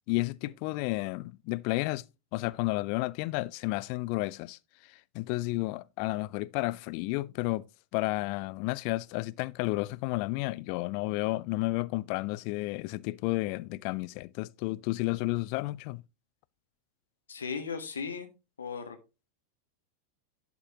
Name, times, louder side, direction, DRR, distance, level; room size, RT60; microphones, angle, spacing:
voice 1, 0.1-2.0 2.3-4.6 4.9-7.6 7.9-16.0, left 21 dB, 45° left, 0.4 m, -32 dB
voice 2, 17.3-18.3 18.6-19.0, left 5 dB, 70° left, 1.3 m, -36 dB
11.0 x 5.9 x 2.9 m
figure-of-eight pair, 90°, 0 cm